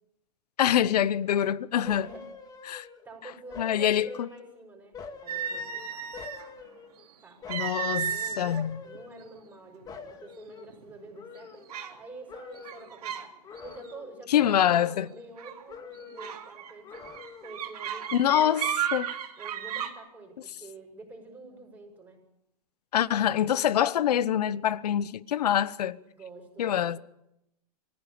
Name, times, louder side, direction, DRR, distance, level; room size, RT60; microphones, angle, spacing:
voice 1, 0.6-2.1 2.6-2.9 3.6-4.3 7.5-8.8 14.3-15.1 18.1-18.6 18.9-19.1 22.9-26.0 26.6-27.0, left 10 dB, 80° left, 1.0 m, -25 dB
sound 1, 1.9-3.1 3.5-4.6 4.9-7.1 7.4-8.0 8.5-9.6 9.9-12.0 12.3-13.0 13.4-14.2 14.5-15.4 15.7-16.4 16.8-17.6 18.0-18.1, left 5 dB, 20° left, 2.1 m, -46 dB
voice 2, 3.0-6.1 7.2-7.5 7.8-11.7 12.0-13.3 13.6-17.1 17.4-18.6 19.4-22.2 26.1-27.0, right 3 dB, 10° right, 6.0 m, -47 dB
sound 2, 5.3-6.5 7.5-8.6 8.9-9.2 9.9-10.0 10.5-10.9 11.7-12.0 12.6-13.3 13.6-13.9 15.4-15.6 16.2-19.9, right 9 dB, 75° right, 3.6 m, -34 dB
24.0 x 16.0 x 8.6 m
hypercardioid pair, 145°, 20 cm